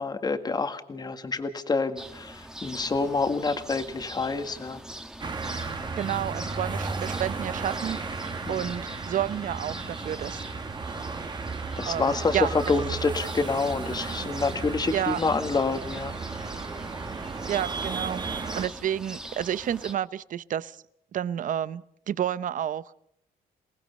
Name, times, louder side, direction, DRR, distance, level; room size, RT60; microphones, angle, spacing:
voice 1, 0.0-4.8 8.5-8.7 11.8-16.2, left 4 dB, 25° left, 8 dB, 1.8 m, -27 dB
sound 1, 2.0-19.9, right 1 dB, 5° right, 1.4 m, -43 dB
sound 2, 5.2-18.7, right 4 dB, 30° right, 1.6 m, -34 dB
voice 2, 6.0-8.0 8.5-10.4 11.8-12.5 14.9-15.2 17.5-20.8 21.1-22.8, right 10 dB, 55° right, 17 dB, 0.8 m, -30 dB
28.5 x 19.0 x 5.4 m, 0.70 s
cardioid pair, 140°, 16 cm